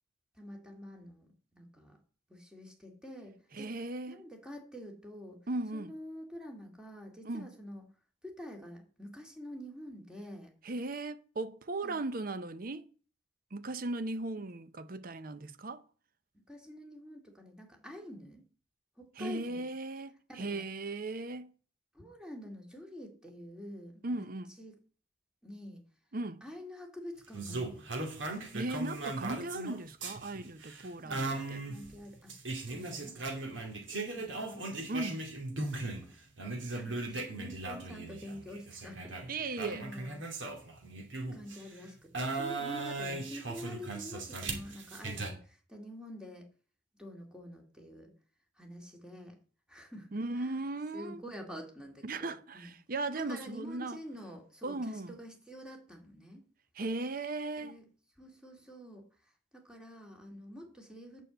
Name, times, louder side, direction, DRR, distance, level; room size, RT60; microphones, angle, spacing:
voice 1, 0.3-2.0 2.3-3.8 4.1-5.4 5.7-7.8 8.2-10.5 11.8-12.0 16.3-18.5 19.0-19.7 20.3-20.7 21.9-24.3 24.6-24.8 25.4-25.8 26.4-27.9 31.0-32.3 32.7-33.3 33.6-34.8 35.7-36.2 36.7-40.2 41.3-46.5 47.0-48.1 48.6-49.4 49.7-50.6 50.9-52.7 53.1-56.4 57.6-57.9 58.2-61.2, equal, 5° right, 2.1 m, -47 dB
voice 2, 3.5-4.2 5.5-5.9 7.2-7.5 10.6-12.9 13.5-15.8 19.2-21.5 24.0-24.5 26.1-26.4 28.5-31.6 34.9-35.3 39.3-39.8 50.1-51.2 52.0-54.0 54.6-55.1 56.7-57.7, right 2 dB, 45° right, 0.7 m, -37 dB
sound 1, 27.3-36.1 36.4-41.7 42.1-45.3, right 2 dB, 75° right, 2.6 m, -38 dB
9.1 x 6.4 x 8.0 m
head